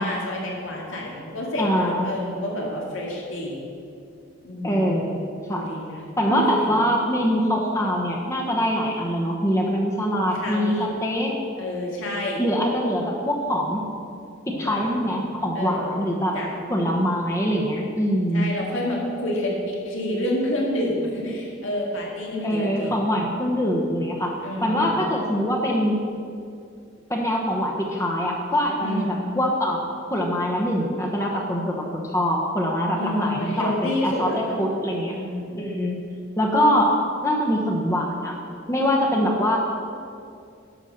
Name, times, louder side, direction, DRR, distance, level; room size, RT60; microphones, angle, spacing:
voice 1, 0.0-3.7 4.4-5.1 5.5-6.0 6.3-6.8 10.3-10.9 11.6-12.4 14.5-15.1 15.5-16.0 16.3-16.5 18.3-23.0 24.4-25.1 28.8-29.3 32.9-34.6 35.1-36.0, left 1 dB, 85° left, -2 dB, 2.2 m, -29 dB
voice 2, 1.6-2.0 4.6-5.2 5.5-5.7 6.2-11.3 12.4-13.8 14.5-16.4 16.7-18.5 22.4-24.3 24.6-26.0 27.1-35.2 35.6-36.0 36.4-36.9 37.2-38.4 38.7-39.6, equal, 15° left, -1 dB, 0.9 m, -23 dB
11.0 x 5.4 x 6.5 m, 2.5 s
head